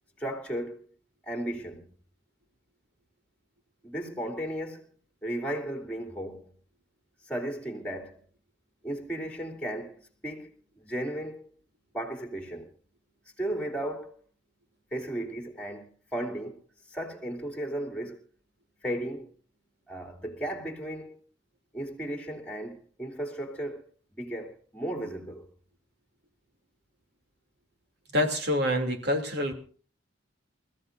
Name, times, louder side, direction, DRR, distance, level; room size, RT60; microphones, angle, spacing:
voice 1, 0.2-0.9 1.3-1.9 3.8-4.9 5.2-6.5 7.3-8.2 8.8-11.5 11.9-12.7 13.4-14.2 14.9-16.6 16.9-18.2 18.8-19.3 19.9-21.2 21.7-23.9 24.2-25.5, right 1 dB, 5° left, 3.0 m, -35 dB
voice 2, 28.1-29.5, left 1 dB, 60° right, 3.0 m, -26 dB
28.0 x 15.0 x 2.7 m
head